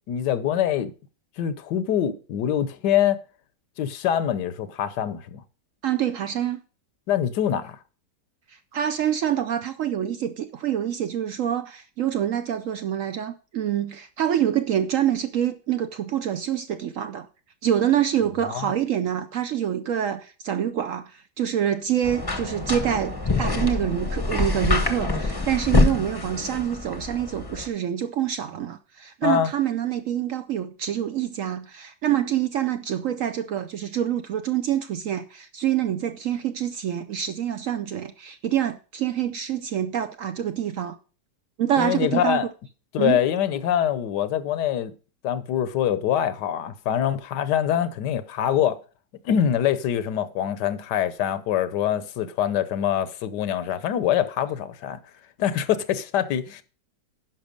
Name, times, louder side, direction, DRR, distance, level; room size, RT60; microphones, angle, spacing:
voice 1, 0.1-0.9 1.4-3.2 3.8-5.4 7.1-7.8 18.5-18.7 29.2-29.5 41.8-42.5 42.9-44.9 45.2-48.8 49.2-55.0 55.4-56.6, left 10 dB, 80° left, 1.3 m, -24 dB
voice 2, 5.8-6.6 8.5-17.3 17.6-41.0 41.6-42.4 43.0-43.2, right 10 dB, 65° right, 0.8 m, -26 dB
sound 1, 22.0-27.7, left 3 dB, 20° left, 0.7 m, -25 dB
10.5 x 5.9 x 5.1 m
omnidirectional pair, 1.8 m